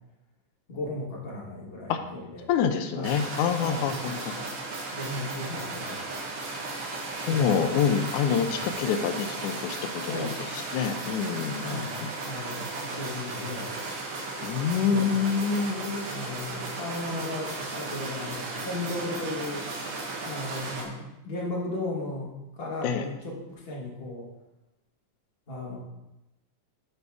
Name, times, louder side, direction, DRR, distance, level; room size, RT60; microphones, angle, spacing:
voice 1, 0.7-2.4 2.9-3.2 3.6-4.5 4.9-6.3 7.3-7.9 8.4-8.7 10.1-10.4 11.6-12.0 12.2-13.7 14.9-15.2 16.1-20.0 20.2-24.3 25.5-25.8, left 1 dB, 60° left, -4 dB, 0.6 m, -36 dB
voice 2, 2.5-4.1 7.2-12.1 14.4-16.1 22.8-23.1, left 7 dB, 85° left, 7 dB, 1.7 m, -27 dB
sound 1, 3.0-20.8, right 3 dB, 85° right, 3.3 m, -35 dB
12.5 x 5.4 x 3.5 m, 0.93 s
omnidirectional pair, 4.1 m